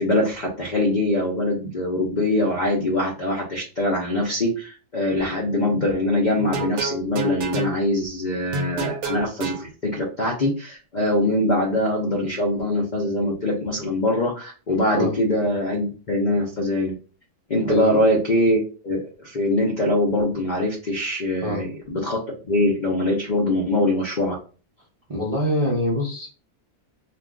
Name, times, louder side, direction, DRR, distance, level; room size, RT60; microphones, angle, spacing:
voice 1, 0.0-16.9 17.5-24.3, left 1 dB, 70° left, -1 dB, 0.4 m, -23 dB
sound 1, 6.4-7.7 8.5-9.6, right 3 dB, 70° right, 1.0 m, -28 dB
voice 2, 25.1-26.3, equal, 40° right, -6 dB, 0.5 m, -24 dB
2.5 x 2.3 x 3.6 m, 0.37 s
omnidirectional pair, 1.7 m